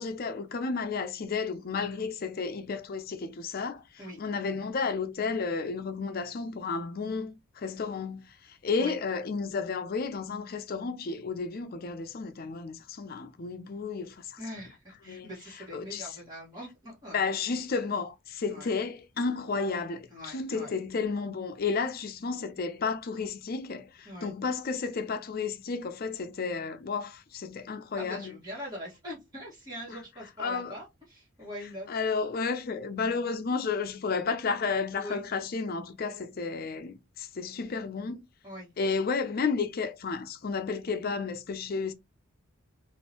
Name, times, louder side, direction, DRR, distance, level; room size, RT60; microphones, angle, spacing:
voice 1, 0.0-14.4 15.1-15.3 15.7-16.1 17.1-28.3 30.4-30.7 31.9-38.3 38.8-41.9, left 4 dB, 45° left, 0.5 m, -32 dB
voice 2, 14.4-17.2 18.5-18.7 20.1-20.7 24.0-24.3 28.0-31.9 34.9-35.2 38.4-38.7, equal, 20° right, 1.5 m, -42 dB
3.6 x 2.5 x 2.9 m
head